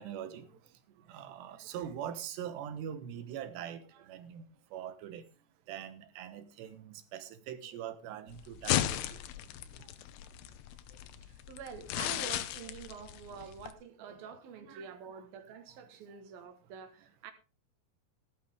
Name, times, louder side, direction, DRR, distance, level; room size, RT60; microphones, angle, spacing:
voice 1, 0.0-5.3 5.7-9.2 9.7-9.9 10.9-11.0 12.6-12.7 14.0-14.2 14.7-15.0 16.1-16.2, right 9 dB, 80° right, 3.4 m, -43 dB
sound 1, 8.3-13.7, left 13 dB, 80° left, 2.9 m, -36 dB
voice 2, 10.9-17.3, right 7 dB, 65° right, 3.1 m, -47 dB
15.0 x 12.5 x 3.5 m
omnidirectional pair, 4.9 m